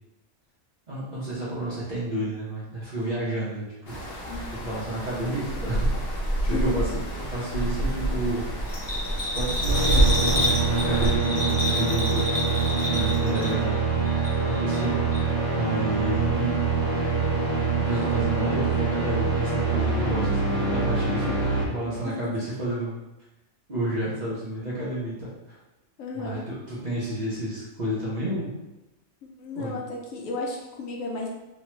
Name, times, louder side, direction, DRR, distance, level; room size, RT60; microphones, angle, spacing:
voice 1, 0.9-4.0 4.6-5.9 6.4-8.5 9.3-12.5 12.9-14.1 14.4-15.2 15.5-16.5 17.7-23.0 23.7-25.6 26.1-28.5 29.5-29.8, right 1 dB, 40° right, -9 dB, 0.8 m, -31 dB
sound 1, 3.9-11.2, right 1 dB, 50° left, 0.9 m, -28 dB
voice 2, 4.3-4.6 6.4-6.8 11.3-11.4 21.8-22.4 26.0-26.5 29.2-31.3, left 3 dB, 75° left, -1 dB, 1.0 m, -34 dB
Bell, 8.7-13.8 14.0-14.8 15.1-15.2, left 1 dB, 20° left, 0.9 m, -29 dB
sound 2, 9.7-21.7, right 4 dB, 20° right, 1.2 m, -25 dB
3.1 x 2.2 x 2.9 m, 0.97 s
omnidirectional pair, 1.4 m